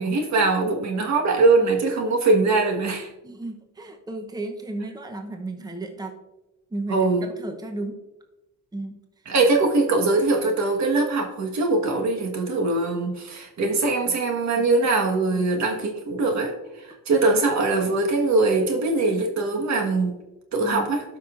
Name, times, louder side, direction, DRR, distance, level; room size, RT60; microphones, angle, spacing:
voice 1, 0.0-3.1 6.9-7.2 9.3-20.1 20.5-21.0, right 3 dB, 65° right, 2 dB, 1.5 m, -22 dB
voice 2, 3.2-6.2 6.7-8.0 8.7-9.0 14.5-14.7 15.3-15.5 20.6-20.9, right 2 dB, 15° right, 4 dB, 0.8 m, -34 dB
12.5 x 5.6 x 2.5 m, 0.99 s
cardioid pair, 90°, 30 cm